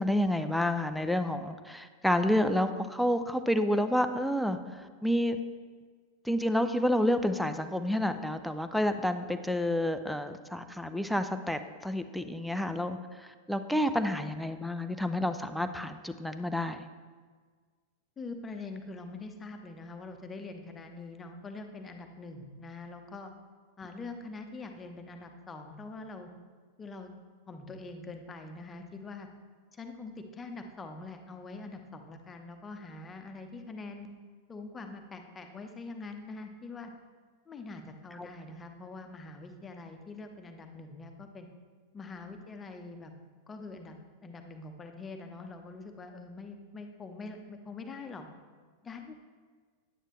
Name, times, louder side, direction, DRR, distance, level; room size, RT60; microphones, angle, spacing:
voice 1, 0.0-5.4 6.2-16.9 38.2-38.3, left 1 dB, ahead, 8 dB, 0.5 m, -29 dB
voice 2, 18.2-23.3 23.8-26.3 26.8-27.1 27.5-29.3 29.7-34.1 34.5-36.9 37.5-41.5 41.9-43.1 43.5-43.9 44.2-48.3 48.8-49.2, left 3 dB, 20° left, 5 dB, 0.9 m, -44 dB
9.9 x 9.1 x 3.2 m, 1.5 s
figure-of-eight pair, 90°, 0 cm